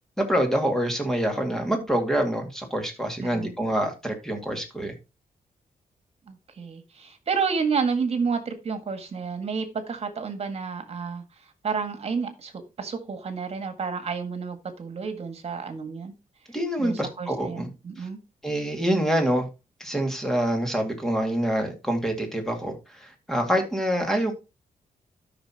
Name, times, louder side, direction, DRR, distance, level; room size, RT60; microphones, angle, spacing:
voice 1, 0.2-4.9 16.5-17.7 18.0-18.1 18.4-19.5 19.8-24.3, equal, 5° left, 2.2 m, -26 dB
voice 2, 3.2-3.5 6.3-11.2 11.6-16.1 16.8-18.2, right 5 dB, 45° right, 1.8 m, -30 dB
12.5 x 6.1 x 2.9 m
wide cardioid pair, 140°, 14 cm